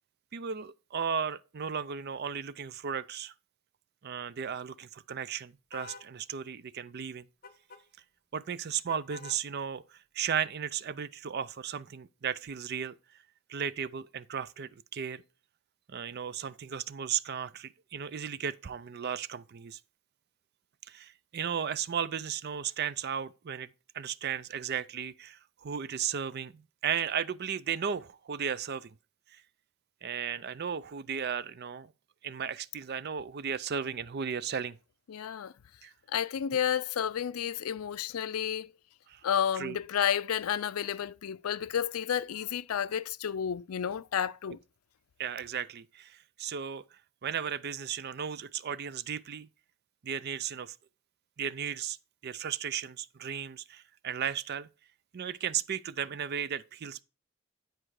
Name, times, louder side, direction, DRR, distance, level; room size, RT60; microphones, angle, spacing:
voice 1, 0.3-3.3 4.0-7.3 8.3-9.8 10.1-13.0 13.5-15.2 15.9-19.8 20.9-23.7 23.9-28.9 30.0-31.9 32.2-34.8 35.8-35.9 39.1-39.2 39.6-39.8 45.2-46.8 47.2-49.5 50.0-50.8 51.4-52.0 52.2-54.7 55.1-57.0, right 7 dB, 50° right, 0.5 m, -35 dB
sound 1, 5.7-6.1 7.4-7.8 8.9-9.4, left 3 dB, 45° left, 1.0 m, -47 dB
voice 2, 35.1-35.5 36.1-38.7 39.2-44.6, left 9 dB, 85° left, 0.4 m, -31 dB
10.0 x 4.6 x 4.8 m
head